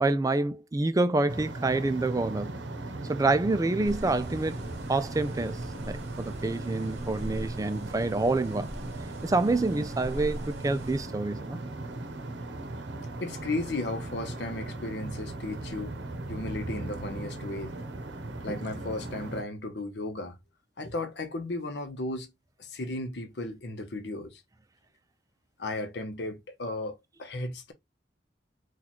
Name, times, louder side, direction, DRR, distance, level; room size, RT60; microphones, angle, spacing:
voice 1, 0.0-2.6 3.1-4.6 4.9-8.7 9.2-11.6, right 2 dB, 20° right, 0.3 m, -27 dB
sound 1, 1.3-19.4, right 2 dB, 90° right, 0.7 m, -38 dB
sound 2, 3.8-11.1, equal, 40° right, 1.0 m, -42 dB
voice 2, 13.2-15.9 16.3-17.8 18.4-20.4 20.8-22.3 22.6-24.4 25.6-27.7, left 2 dB, 70° left, 0.8 m, -35 dB
2.9 x 2.4 x 4.0 m
head